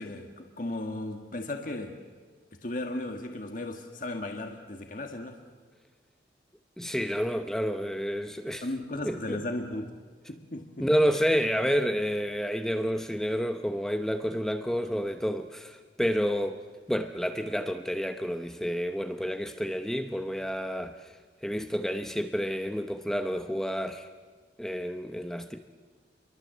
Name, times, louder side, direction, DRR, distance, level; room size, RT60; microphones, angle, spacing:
voice 1, 0.0-2.0 2.6-5.4 8.6-10.0 10.3-10.9, left 1 dB, 50° left, 3 dB, 1.8 m, -36 dB
voice 2, 6.8-8.7 9.0-9.4 10.8-16.6 16.9-21.1 21.4-24.1 24.6-25.6, equal, 5° left, 7 dB, 0.8 m, -29 dB
29.0 x 23.0 x 7.8 m, 1.5 s
head